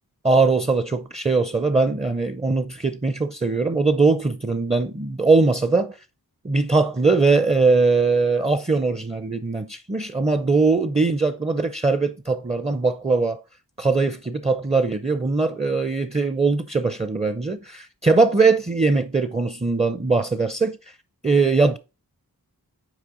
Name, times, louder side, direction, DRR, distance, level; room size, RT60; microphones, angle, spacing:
voice 1, 0.2-6.0 6.4-13.4 13.8-20.8 21.2-21.8, right 3 dB, 15° right, 0.5 m, -21 dB
6.2 x 4.4 x 3.7 m
wide cardioid pair, 45°, 39 cm